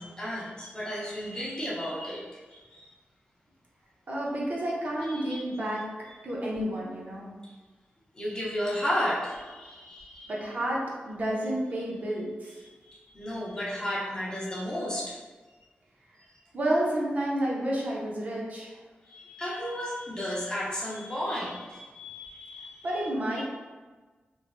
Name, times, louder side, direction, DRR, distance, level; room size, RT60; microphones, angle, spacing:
voice 1, 0.0-2.8 5.3-5.4 8.2-10.3 12.9-15.2 19.1-23.0 23.3-23.4, equal, 20° left, -6 dB, 0.7 m, -33 dB
voice 2, 4.1-5.9 6.2-7.3 10.3-12.6 16.5-18.8 22.8-23.4, right 1 dB, 45° right, -5 dB, 0.7 m, -30 dB
3.1 x 2.6 x 2.5 m, 1.3 s
wide cardioid pair, 150°, 4 cm